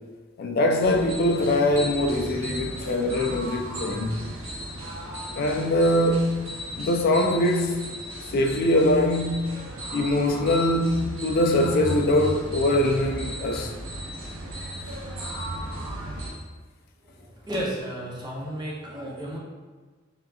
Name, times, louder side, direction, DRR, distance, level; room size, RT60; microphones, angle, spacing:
voice 1, 0.4-4.2 5.3-6.5 6.8-7.9 8.3-9.6 9.9-13.7, left 1 dB, 50° left, 3 dB, 0.3 m, -23 dB
sound 1, 0.8-16.3, right 1 dB, 75° right, 0.7 m, -35 dB
voice 2, 17.0-19.4, equal, 20° right, -5 dB, 0.6 m, -33 dB
3.5 x 2.8 x 2.3 m, 1.4 s
head